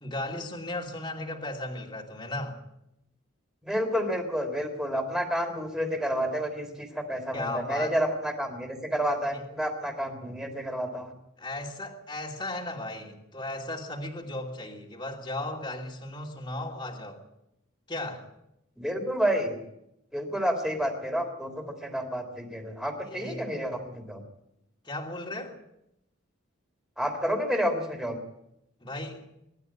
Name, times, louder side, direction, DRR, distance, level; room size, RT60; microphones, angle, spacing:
voice 1, 0.0-2.6 7.3-7.9 9.3-9.4 11.4-17.2 17.9-18.3 23.0-23.5 24.8-25.5 28.8-29.3, left 2 dB, 20° left, 0 dB, 2.7 m, -36 dB
voice 2, 3.6-11.1 18.8-19.6 20.1-24.2 27.0-28.2, equal, 5° right, 5 dB, 3.5 m, -30 dB
23.5 x 12.0 x 9.7 m, 0.84 s
head